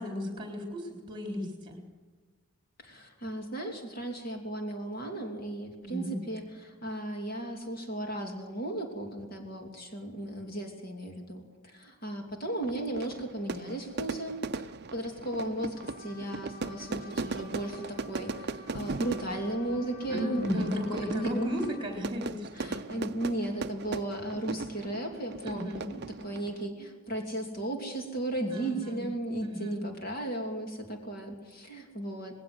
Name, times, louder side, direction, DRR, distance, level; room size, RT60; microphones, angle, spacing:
voice 1, 0.0-1.8 5.8-6.2 20.1-23.1 25.4-25.8 28.5-29.0 29.4-29.8, equal, 20° right, 2 dB, 3.9 m, -35 dB
voice 2, 2.8-21.5 22.5-32.4, right 1 dB, 40° left, 2 dB, 2.9 m, -36 dB
Fire / Fireworks, 12.6-26.7, right 4 dB, 45° right, 0.5 m, -39 dB
Trumpet, 15.7-22.0, left 2 dB, 75° left, 4.1 m, -50 dB
20.0 x 17.5 x 7.8 m, 1.4 s
head